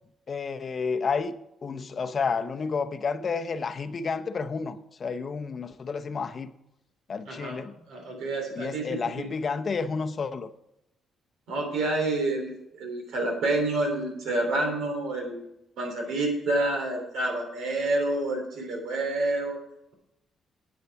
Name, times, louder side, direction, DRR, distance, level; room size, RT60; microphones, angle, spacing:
voice 1, 0.3-1.3 1.6-6.5 7.1-7.7 8.6-10.5, left 5 dB, 45° left, 0.7 m, -30 dB
voice 2, 7.3-7.6 7.9-9.3 11.5-15.5 15.8-19.6, right 2 dB, 80° right, 3.1 m, -28 dB
9.7 x 8.1 x 4.7 m
cardioid pair, 90°, 0 cm